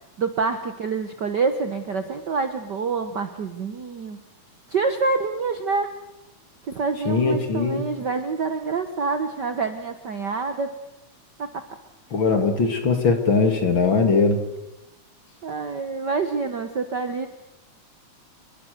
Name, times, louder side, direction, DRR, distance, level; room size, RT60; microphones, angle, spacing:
voice 1, 0.2-4.2 4.7-5.9 6.6-10.7 11.4-11.6 15.4-17.3, right 4 dB, 50° right, 8 dB, 1.3 m, -26 dB
voice 2, 7.1-7.8 12.1-14.4, left 4 dB, 40° left, 6 dB, 2.8 m, -20 dB
28.5 x 22.0 x 6.7 m, 0.94 s
omnidirectional pair, 3.4 m